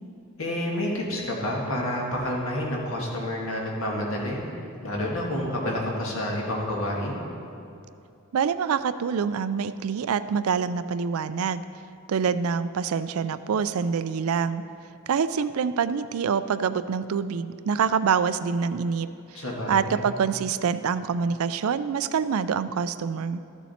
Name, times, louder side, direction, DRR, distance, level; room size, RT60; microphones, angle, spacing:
voice 1, 0.4-4.4 4.8-7.2 19.3-20.0, left 1 dB, 70° left, -2 dB, 1.9 m, -29 dB
voice 2, 8.3-11.7 12.1-14.6 15.1-23.4, right 6 dB, 85° right, 13 dB, 0.4 m, -26 dB
13.5 x 7.2 x 4.3 m, 2.7 s
head